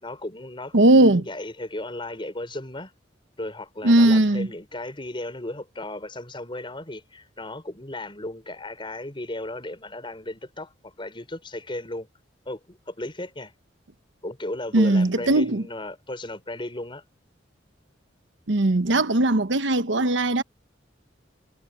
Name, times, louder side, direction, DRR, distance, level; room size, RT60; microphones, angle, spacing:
voice 1, 0.0-2.9 3.4-12.1 12.5-13.5 14.2-17.0, left 1 dB, 25° left, 5.3 m, -35 dB
voice 2, 0.7-1.2 3.8-4.5 14.7-15.6 18.5-20.4, right 1 dB, 80° right, 1.1 m, -19 dB
head